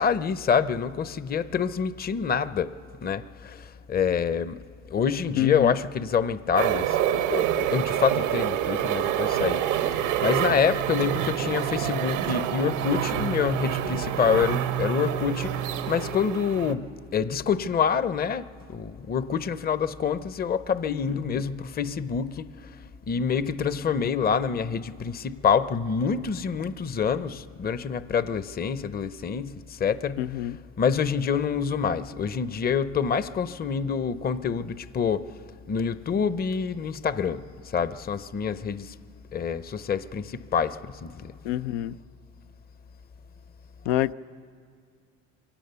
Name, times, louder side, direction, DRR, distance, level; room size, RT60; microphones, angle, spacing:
voice 1, 0.0-2.7 3.0-3.6 3.9-4.6 4.9-9.6 10.0-15.5 15.9-22.5 23.1-30.3 30.8-35.2 35.7-37.4 37.7-38.9 39.3-41.3, left 6 dB, 25° left, 15 dB, 0.6 m, -26 dB
voice 2, 5.3-5.7 21.1-21.5 30.2-30.6 41.4-42.0 43.9-44.1, left 14 dB, 85° left, 14 dB, 0.6 m, -27 dB
sound 1, 6.6-16.7, right 11 dB, 85° right, 1.3 m, -27 dB
24.0 x 17.5 x 6.9 m, 2.1 s
supercardioid pair, 80°, 36 cm